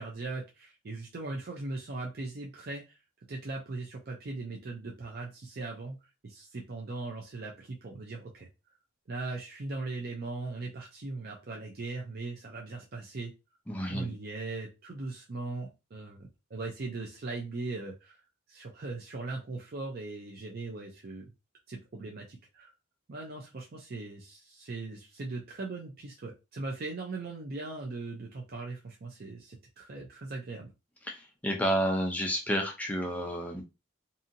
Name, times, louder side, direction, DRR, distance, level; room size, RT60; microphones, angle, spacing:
voice 1, 0.0-3.0 3.3-6.0 6.2-8.5 9.1-13.3 13.9-18.2 18.5-21.3 21.7-22.7 23.1-30.7, right 3 dB, 45° right, 0 dB, 0.5 m, -39 dB
voice 2, 13.7-14.1 31.1-33.6, equal, 5° left, 1 dB, 0.4 m, -30 dB
2.7 x 2.7 x 2.5 m, 0.27 s
head